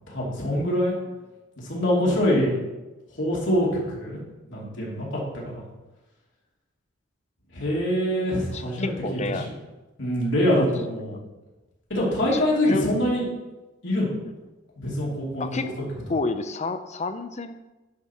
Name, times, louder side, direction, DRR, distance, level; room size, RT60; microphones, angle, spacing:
voice 1, 0.1-0.9 1.6-2.5 3.1-4.2 4.5-5.6 7.5-9.4 10.0-11.2 11.9-13.3 13.8-14.1 14.8-15.5 15.8-15.9, equal, 65° left, -4 dB, 3.0 m, -24 dB
voice 2, 8.5-9.6 10.6-10.7 12.3-12.9 15.4-15.7 16.1-17.6, left 3 dB, 35° left, 10 dB, 0.6 m, -30 dB
10.5 x 4.8 x 5.7 m, 1.1 s
head